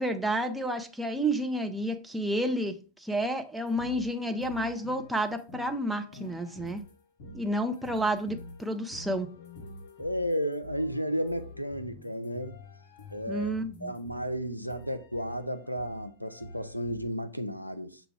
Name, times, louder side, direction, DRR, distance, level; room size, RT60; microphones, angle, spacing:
voice 1, 0.0-6.8 7.3-9.3 13.3-13.9, right 1 dB, 5° right, 0.5 m, -30 dB
sound 1, 3.7-17.1, left 2 dB, 50° left, 0.8 m, -47 dB
voice 2, 10.0-12.6 13.1-13.6 13.8-18.0, equal, 90° left, 0.4 m, -33 dB
6.7 x 2.3 x 3.2 m
figure-of-eight pair, 90°, 0 cm